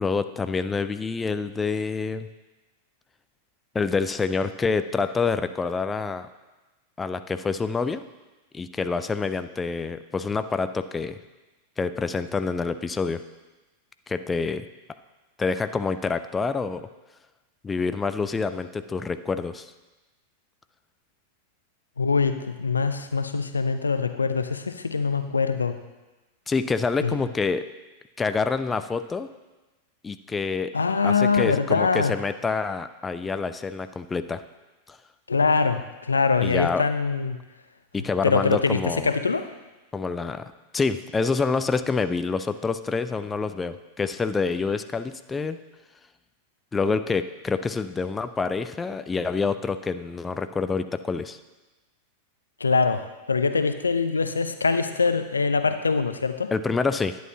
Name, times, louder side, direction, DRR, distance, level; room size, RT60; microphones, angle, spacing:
voice 1, 0.0-2.3 3.7-6.3 7.0-8.0 8.5-11.2 11.8-13.2 14.1-14.6 15.4-16.8 17.6-19.7 26.5-27.6 28.2-29.3 30.0-30.7 31.0-34.4 34.9-35.0 36.4-36.8 37.9-39.1 39.9-45.6 46.7-51.4 56.5-57.2, left 4 dB, 15° left, 11 dB, 0.4 m, -27 dB
voice 2, 22.0-25.8 27.0-27.2 30.7-32.1 35.3-37.4 38.2-39.5 52.6-56.5, left 4 dB, 85° left, 10 dB, 0.5 m, -23 dB
11.0 x 9.2 x 2.8 m, 1.1 s
figure-of-eight pair, 95°, 0 cm